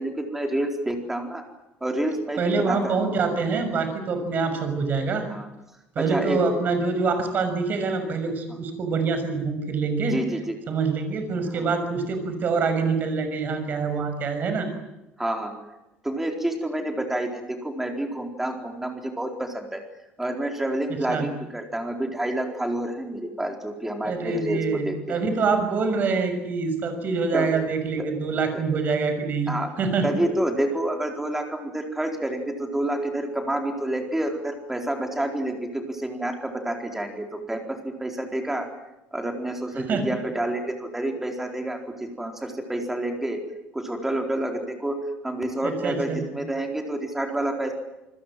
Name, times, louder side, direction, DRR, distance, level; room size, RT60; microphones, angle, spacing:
voice 1, 0.0-1.4 1.8-3.0 5.3-5.5 6.0-6.4 10.1-10.6 11.5-11.7 15.2-15.5 16.0-19.8 20.2-25.2 27.3-27.5 28.0-28.1 28.5-28.6 29.5-29.7 30.0-38.7 39.1-43.4 43.7-45.0 45.2-47.7, right 1 dB, 5° right, 4 dB, 4.3 m, -28 dB
voice 2, 2.4-5.2 5.9-10.2 10.7-14.7 21.1-21.3 24.0-30.2 39.8-40.0 45.6-46.2, right 4 dB, 40° right, 7 dB, 6.4 m, -25 dB
28.5 x 20.5 x 7.7 m, 0.95 s
cardioid pair, 155°, 5 cm